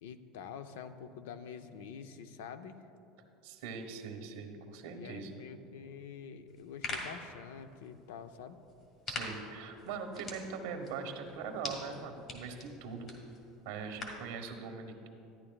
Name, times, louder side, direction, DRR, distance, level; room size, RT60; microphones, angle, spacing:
voice 1, 0.0-2.8 4.9-8.6, left 7 dB, 90° left, 10 dB, 0.5 m, -47 dB
voice 2, 3.4-5.4 9.1-13.1 13.6-15.1, right 5 dB, 85° right, 5 dB, 1.2 m, -41 dB
sound 1, 6.5-14.3, left 3 dB, 45° left, 1.9 m, -45 dB
13.5 x 9.9 x 2.4 m, 2.7 s
supercardioid pair, 125°, 0 cm